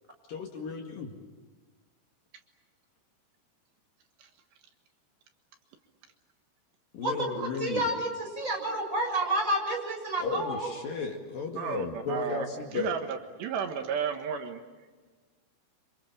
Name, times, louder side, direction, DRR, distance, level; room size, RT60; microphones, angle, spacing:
voice 1, 0.3-1.1 6.9-7.9 10.2-13.0, left 5 dB, 55° left, 2 dB, 3.4 m, -34 dB
voice 2, 7.4-10.7, right 1 dB, 15° right, 1 dB, 6.8 m, -30 dB
voice 3, 11.6-12.5 12.7-14.6, right 7 dB, 70° right, 5 dB, 3.6 m, -33 dB
29.5 x 26.5 x 7.3 m, 1.3 s
omnidirectional pair, 5.3 m